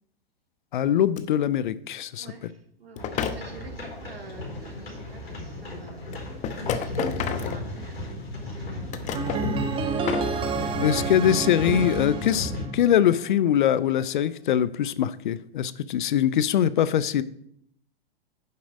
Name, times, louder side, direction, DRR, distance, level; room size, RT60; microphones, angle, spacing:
voice 1, 0.7-2.3 10.8-17.2, left 10 dB, 55° left, 0.6 m, -23 dB
sound 1, 1.2-1.3 3.0-3.4 5.1-5.2 6.1-8.1 8.7-9.5 9.9-10.3, left 8 dB, 25° left, 0.8 m, -31 dB
voice 2, 2.2-6.1 6.3-6.5 6.7-8.0 8.4-9.2 9.5-10.3, right 4 dB, 75° right, 2.2 m, -47 dB
sound 2, 3.0-12.6, left 2 dB, 85° left, 4.5 m, -34 dB
sound 3, 9.1-13.2, right 5 dB, 15° right, 0.9 m, -30 dB
9.8 x 7.3 x 5.0 m
figure-of-eight pair, 100°, 30 cm